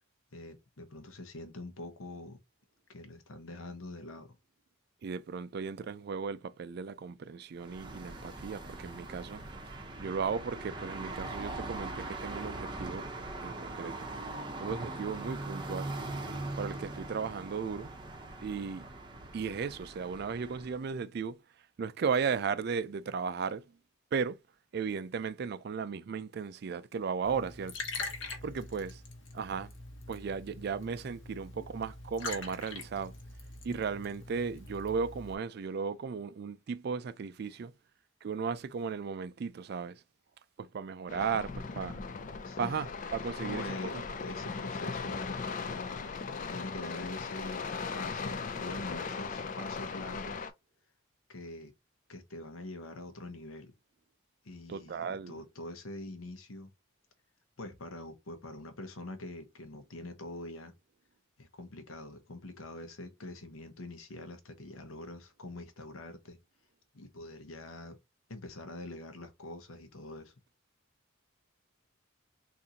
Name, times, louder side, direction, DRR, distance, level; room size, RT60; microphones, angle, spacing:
voice 1, 0.3-2.4 2.9-4.4 42.4-42.9 43.4-46.0 46.5-47.6 47.9-50.5 51.3-51.7 52.1-53.7 54.4-56.7 57.6-60.7 61.4-66.4 66.9-68.0 68.3-70.3, left 2 dB, 85° left, 0.8 m, -44 dB
voice 2, 5.0-9.4 10.0-13.1 13.4-14.1 14.6-15.9 16.6-17.9 18.4-18.8 19.3-21.4 21.8-23.6 24.1-24.4 24.7-27.8 28.4-29.0 29.3-29.7 30.1-33.1 33.6-37.7 38.2-40.0 40.6-42.0 42.6-44.0 54.7-55.4, right 5 dB, 50° right, 0.3 m, -35 dB
sound 1, 7.6-20.9, right 2 dB, 20° right, 0.7 m, -41 dB
Liquid, 27.2-35.3, left 3 dB, 65° left, 1.0 m, -43 dB
sound 2, 41.1-50.5, left 5 dB, 40° left, 0.4 m, -38 dB
3.8 x 2.6 x 2.8 m
head